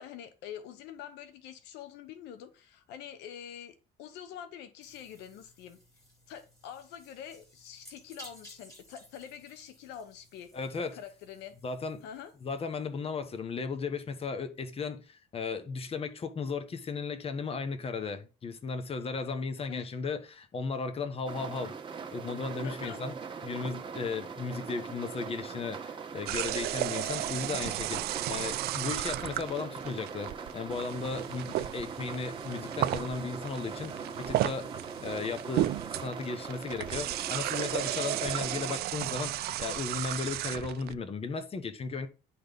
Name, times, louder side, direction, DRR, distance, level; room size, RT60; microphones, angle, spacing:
voice 1, 0.0-5.8 6.3-10.5 10.9-11.6 12.0-12.3 19.7-19.9 22.5-23.0, left 9 dB, 90° left, 0.9 m, -45 dB
sound 1, 4.8-12.9, equal, 20° left, 3.5 m, -56 dB
voice 2, 10.5-11.0 11.6-12.0 12.4-21.7 22.1-23.1 23.4-30.3 30.5-34.7 35.0-42.1, left 4 dB, 35° left, 1.3 m, -35 dB
sound 2, 21.3-38.8, right 5 dB, 30° right, 1.6 m, -41 dB
sound 3, 26.3-40.9, right 15 dB, 70° right, 0.4 m, -34 dB
10.0 x 4.1 x 5.2 m
cardioid pair, 110°, 17 cm